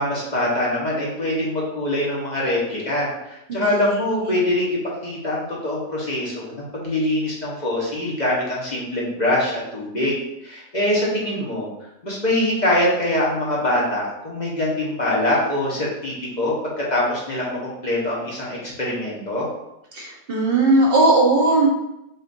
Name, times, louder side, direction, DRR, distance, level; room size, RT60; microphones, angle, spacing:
voice 1, 0.0-10.2 10.4-11.7 12.0-19.5, left 1 dB, 35° left, -5 dB, 1.0 m, -23 dB
voice 2, 3.5-4.4 19.9-21.7, right 2 dB, 45° right, -3 dB, 1.1 m, -19 dB
6.5 x 2.5 x 2.6 m, 0.86 s
omnidirectional pair, 1.5 m